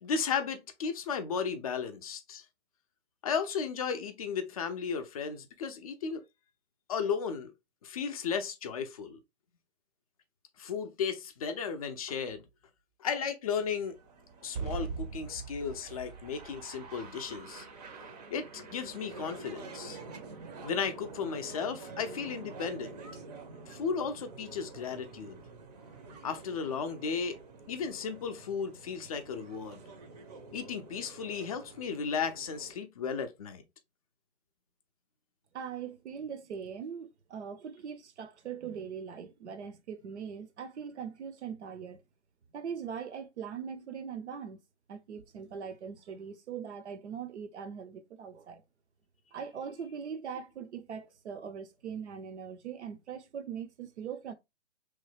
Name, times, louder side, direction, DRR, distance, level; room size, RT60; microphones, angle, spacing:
voice 1, 0.0-2.4 3.2-6.2 6.9-7.5 7.8-9.2 10.6-12.4 13.0-14.0 14.4-17.7 18.3-20.0 20.6-23.0 23.7-25.4 26.2-27.4 27.7-29.8 30.5-33.6, left 6 dB, 30° left, 0.4 m, -35 dB
sound 1, 13.6-32.8, right 4 dB, 35° right, 0.6 m, -46 dB
voice 2, 35.5-42.0 42.5-44.6 44.9-48.6 49.3-54.3, right 7 dB, 70° right, 0.7 m, -41 dB
3.1 x 2.1 x 3.1 m
hypercardioid pair, 145°, 35 cm